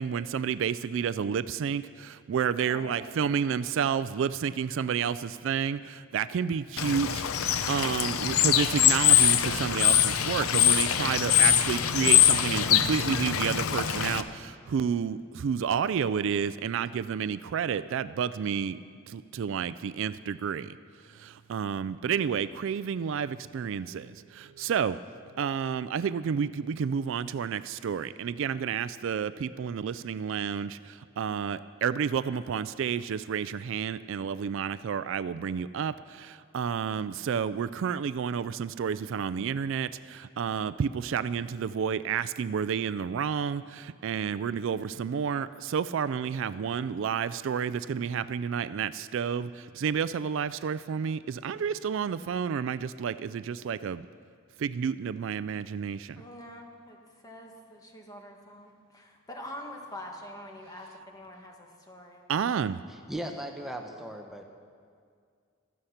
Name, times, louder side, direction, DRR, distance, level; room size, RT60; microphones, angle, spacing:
voice 1, 0.0-18.8 19.1-20.8 21.1-25.0 25.4-54.0 54.6-56.2 62.3-62.8, right 7 dB, 60° right, 15 dB, 0.3 m, -30 dB
voice 2, 2.6-3.3 56.1-57.0 57.2-62.2, left 1 dB, 15° left, 1 dB, 1.6 m, -45 dB
Bird / Water, 6.8-14.2, left 10 dB, 85° left, 0.7 m, -23 dB
voice 3, 62.9-64.5, right 1 dB, ahead, 3 dB, 0.9 m, -38 dB
15.5 x 13.0 x 5.7 m, 2.2 s
head